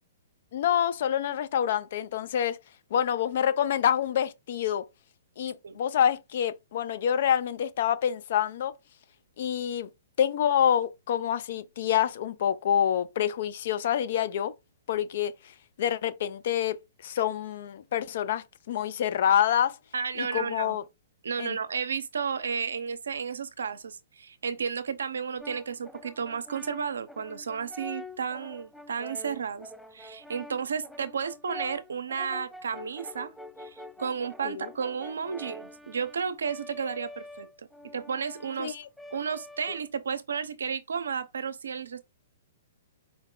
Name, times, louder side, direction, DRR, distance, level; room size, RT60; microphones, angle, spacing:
voice 1, 0.5-2.6 2.9-4.9 5.4-8.7 9.4-9.9 10.2-14.5 14.9-16.8 17.0-19.8 20.2-20.8 21.4-21.6 34.4-34.7 38.6-38.9, left 9 dB, 60° left, 0.5 m, -27 dB
voice 2, 19.9-20.8 21.2-33.3 33.6-37.5 37.9-38.8 39.1-42.0, right 6 dB, 75° right, 0.6 m, -33 dB
Brass instrument, 25.4-40.2, left 1 dB, ahead, 0.4 m, -46 dB
4.6 x 2.1 x 3.7 m
hypercardioid pair, 120°, 0 cm